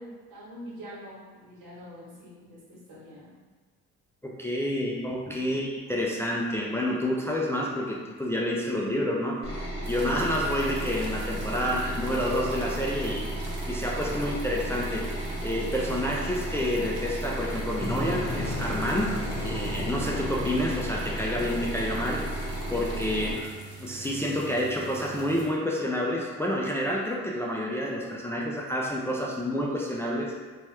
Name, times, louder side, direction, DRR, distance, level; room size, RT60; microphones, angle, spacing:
voice 1, 0.0-3.3 5.5-5.6 23.2-23.4, equal, 80° right, -7 dB, 1.2 m, -45 dB
voice 2, 4.2-13.3 13.7-15.1 15.4-19.2 19.4-22.4 22.7-23.5 23.8-30.3, left 1 dB, 10° left, -3 dB, 0.3 m, -29 dB
sound 1, 9.4-23.3, right 1 dB, 20° right, 1.0 m, -34 dB
sound 2, 9.8-25.5, right 4 dB, 55° right, 0.7 m, -44 dB
sound 3, 17.8-23.7, left 2 dB, 50° left, 0.8 m, -37 dB
2.9 x 2.3 x 3.1 m, 1.4 s
cardioid pair, 90°, 30 cm